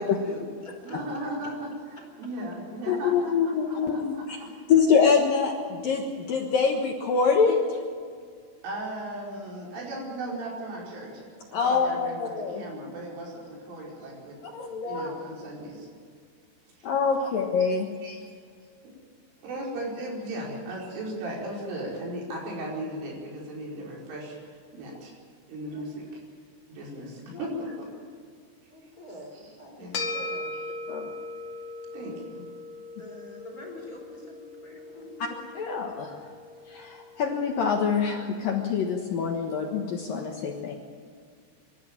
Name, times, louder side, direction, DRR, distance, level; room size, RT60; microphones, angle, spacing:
voice 1, 0.0-0.9 4.3-4.4 28.7-30.5 33.0-35.3, left 1 dB, 20° left, -1 dB, 4.3 m, -44 dB
voice 2, 0.8-1.7 2.2-4.5 8.6-11.2 11.5-14.4 14.8-15.9 16.8-16.9 17.2-17.7 18.0-18.2 18.8-18.9 19.4-25.1 25.5-26.2 26.7-27.9 29.3-29.5 29.8-30.1 30.5-30.7 31.9-32.4, right 1 dB, 85° right, -2 dB, 7.3 m, -37 dB
voice 3, 2.9-4.4 4.7-7.8 11.5-12.6 14.5-15.1 16.8-17.9 30.1-30.3 30.9-31.1 35.2-35.3 35.5-36.3 36.7-40.8, left 5 dB, 65° left, 2 dB, 2.4 m, -25 dB
sound 1, 29.9-38.5, left 2 dB, 40° left, 2.7 m, -39 dB
25.0 x 13.0 x 8.9 m, 2.1 s
omnidirectional pair, 5.5 m